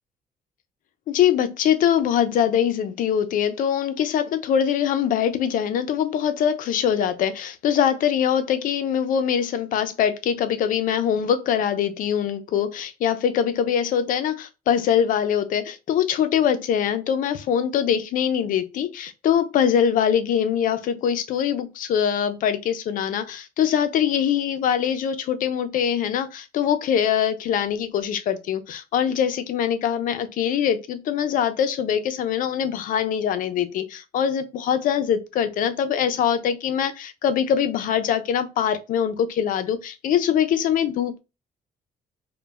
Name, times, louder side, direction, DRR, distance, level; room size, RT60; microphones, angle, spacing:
voice 1, 1.1-41.2, left 9 dB, 65° left, 0.5 m, -23 dB
2.2 x 2.0 x 3.4 m
cardioid pair, 100°, 15 cm